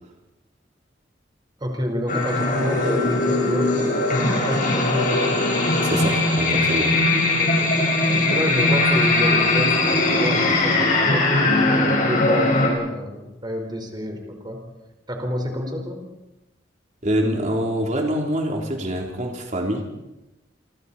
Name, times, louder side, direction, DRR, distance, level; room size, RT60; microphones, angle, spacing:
voice 1, 1.6-3.8 4.4-5.2 7.4-7.8 8.2-14.6 15.1-16.0, equal, 25° right, 3 dB, 4.4 m, -29 dB
sound 1, 2.1-12.7, left 2 dB, 50° left, 4.9 m, -20 dB
voice 2, 5.8-7.0 17.0-19.9, equal, 40° right, 1 dB, 3.3 m, -25 dB
28.0 x 24.5 x 4.3 m, 0.97 s
head